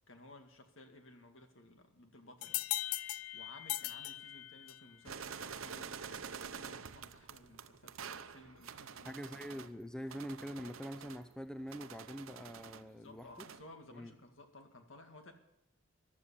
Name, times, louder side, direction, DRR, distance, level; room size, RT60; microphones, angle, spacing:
voice 1, 0.1-2.6 3.3-9.2 9.6-9.7 12.6-15.3, left 1 dB, 65° left, 5 dB, 2.1 m, -57 dB
sound 1, 2.4-5.0, left 14 dB, 90° left, 0.5 m, -39 dB
sound 2, 5.1-9.7 10.1-12.9 13.2-13.7, right 6 dB, 75° right, 0.7 m, -48 dB
voice 2, 9.0-13.5 13.9-14.1, equal, 5° left, 8 dB, 0.6 m, -44 dB
14.5 x 12.0 x 7.0 m, 0.85 s
head